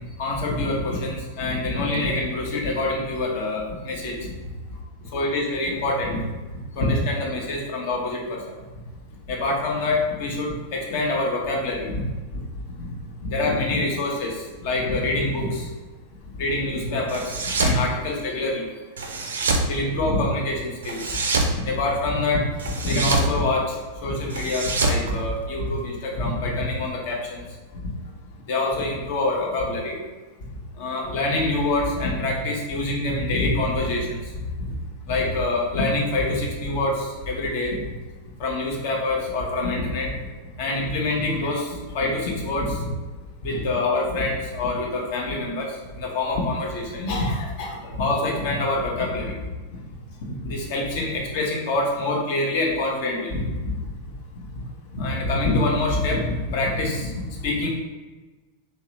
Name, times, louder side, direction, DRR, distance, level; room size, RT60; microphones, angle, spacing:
voice 1, 0.2-4.3 5.1-6.2 6.7-8.4 9.3-11.9 13.2-15.7 16.4-18.7 19.7-21.2 21.6-22.5 22.8-27.4 28.5-30.0 30.8-34.2 34.7-34.8 35.1-37.8 38.4-40.1 40.6-42.9 43.4-49.3 50.4-53.7 54.9-57.1 57.4-57.7, left 2 dB, 50° left, -1 dB, 0.8 m, -25 dB
sound 1, 17.1-17.8 19.0-19.7 20.8-21.6 22.6-23.3 24.3-25.8, right 3 dB, 65° right, 0.4 m, -25 dB
3.0 x 2.8 x 3.1 m, 1.2 s
figure-of-eight pair, 90°, 0 cm